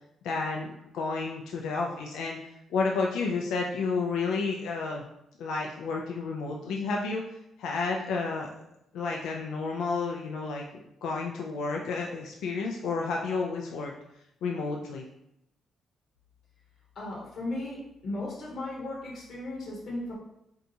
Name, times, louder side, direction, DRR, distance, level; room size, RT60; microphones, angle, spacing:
voice 1, 0.2-5.0 5.4-7.2 7.6-8.5 8.9-10.6 11.0-13.9 14.4-15.0, left 4 dB, 80° left, 0 dB, 0.3 m, -31 dB
voice 2, 17.0-17.8 18.0-20.1, left 2 dB, 55° left, -4 dB, 0.9 m, -36 dB
2.7 x 2.3 x 3.9 m, 0.81 s
cardioid pair, 90°, 0 cm